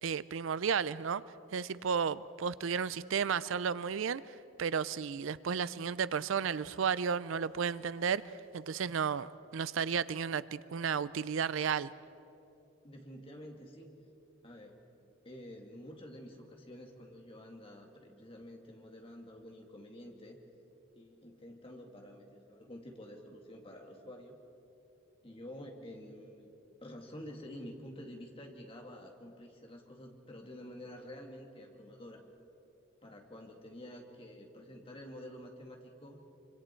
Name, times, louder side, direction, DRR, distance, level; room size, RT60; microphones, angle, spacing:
voice 1, 0.0-1.2 1.5-8.2 8.5-11.9, right 6 dB, 75° right, 17 dB, 0.5 m, -33 dB
voice 2, 12.8-13.9 14.4-14.8 15.2-20.4 20.9-24.4 25.2-26.5 26.8-32.2 33.0-36.3, left 1 dB, 25° left, 1 dB, 2.3 m, -49 dB
25.5 x 25.5 x 4.5 m, 2.8 s
head